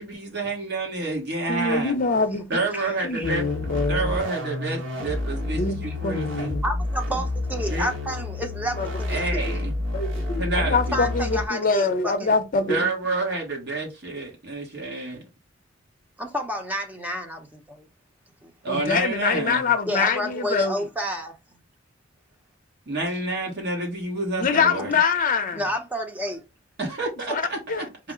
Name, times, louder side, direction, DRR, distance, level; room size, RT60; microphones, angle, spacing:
voice 1, 0.0-1.9 2.5-6.6 7.7-7.9 9.1-9.8 10.4-11.1 12.7-15.2 18.6-19.6 22.9-25.0 26.8-27.8, right 2 dB, 60° right, 1.3 m, -29 dB
voice 2, 1.5-2.5 3.0-4.2 5.6-6.6 8.7-8.9 9.4-9.5 9.9-12.9 18.7-20.9 24.4-25.6 27.3-27.9, left 4 dB, 45° left, 0.6 m, -24 dB
voice 3, 2.7-3.3 6.6-9.2 10.9-12.3 16.2-17.9 18.4-18.5 19.9-21.3 25.5-26.4, equal, 10° right, 0.7 m, -30 dB
sound 1, 3.2-11.5, left 2 dB, 75° right, 1.2 m, -29 dB
4.8 x 2.1 x 3.6 m
head